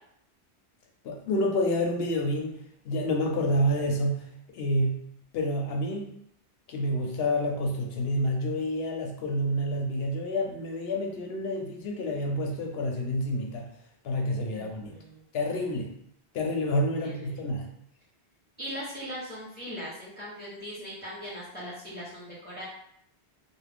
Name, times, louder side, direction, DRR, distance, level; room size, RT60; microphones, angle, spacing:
voice 1, 1.0-2.6 2.8-4.2 4.5-5.0 5.3-6.1 6.7-13.7 14.0-14.9 15.3-15.9 16.3-17.7, equal, 70° left, 2 dB, 0.8 m, -28 dB
voice 2, 14.5-15.2 17.0-17.3 18.6-22.6, equal, 10° left, -9 dB, 0.9 m, -40 dB
2.3 x 2.2 x 3.4 m, 0.70 s
omnidirectional pair, 1.1 m